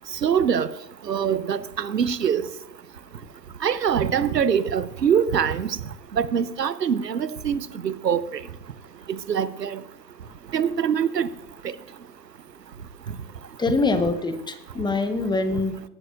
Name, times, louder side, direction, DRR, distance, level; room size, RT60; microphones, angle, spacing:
voice 1, 0.2-0.7 1.1-2.5 3.6-5.8 6.1-8.4 9.3-9.8 10.5-11.3 11.6-11.7, right 8 dB, 85° right, 0.8 m, -23 dB
voice 2, 13.6-15.9, left 3 dB, 10° left, 1.0 m, -24 dB
17.5 x 9.9 x 2.5 m
figure-of-eight pair, 100°, 48 cm